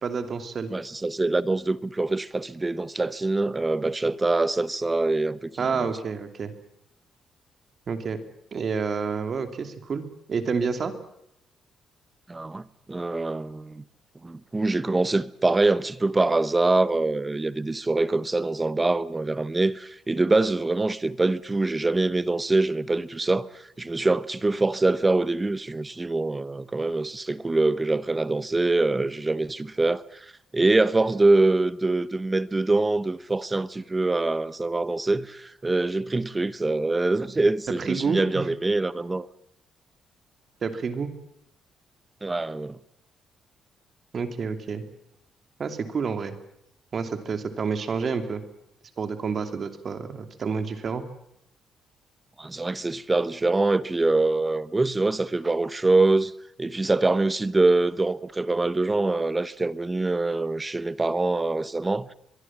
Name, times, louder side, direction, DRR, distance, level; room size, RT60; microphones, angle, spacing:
voice 1, 0.0-0.7 5.6-6.5 7.9-8.2 8.5-10.9 37.8-38.4 40.6-41.1 44.1-44.8 45.6-46.4 46.9-48.4 49.0-51.0, right 5 dB, 35° right, 2.8 m, -29 dB
voice 2, 0.7-5.9 12.3-13.8 14.2-39.3 42.2-42.8 52.4-56.3 56.6-62.1, right 2 dB, 15° right, 0.8 m, -24 dB
23.5 x 23.0 x 7.4 m
cardioid pair, 160°, 0 cm